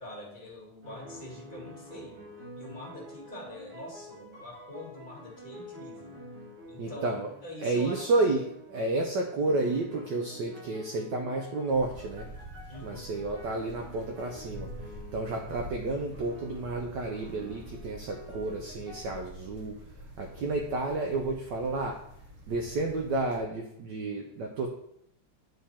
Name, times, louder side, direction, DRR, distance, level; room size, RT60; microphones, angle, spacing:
voice 1, 0.0-2.2 2.6-6.2 6.7-7.1 7.4-8.3 12.7-13.0, left 1 dB, 20° left, -3 dB, 2.2 m, -44 dB
sound 1, 0.8-7.6 7.9-9.0 9.4-15.5 16.1-19.2, equal, 90° right, 3.1 m, -48 dB
voice 2, 6.8-7.3 7.6-12.3 12.8-14.7 15.1-19.7 20.2-22.0 22.5-24.7, right 2 dB, 65° right, 1 dB, 1.3 m, -31 dB
sound 2, 11.7-23.4, equal, 40° right, 1.1 m, -46 dB
9.6 x 3.9 x 4.3 m, 0.72 s
omnidirectional pair, 2.4 m